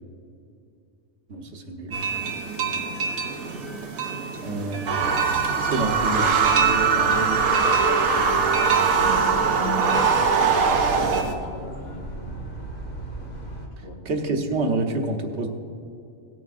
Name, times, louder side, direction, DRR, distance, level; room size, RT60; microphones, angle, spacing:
voice 1, 1.3-2.0 4.4-5.1 5.5-7.2 14.0-15.5, right 2 dB, 55° right, 4 dB, 1.2 m, -28 dB
sound 1, 1.9-11.3, right 5 dB, 90° right, 1.4 m, -30 dB
voice 2, 2.6-3.1 8.3-8.7 9.8-12.4 13.8-14.0, left 1 dB, 85° left, -4 dB, 2.1 m, -43 dB
sound 2, 4.9-11.2, right 5 dB, 75° right, 1.2 m, -21 dB
sound 3, 5.8-13.7, right 1 dB, 60° left, 2.2 m, -38 dB
17.5 x 9.1 x 2.5 m, 2.5 s
omnidirectional pair, 1.4 m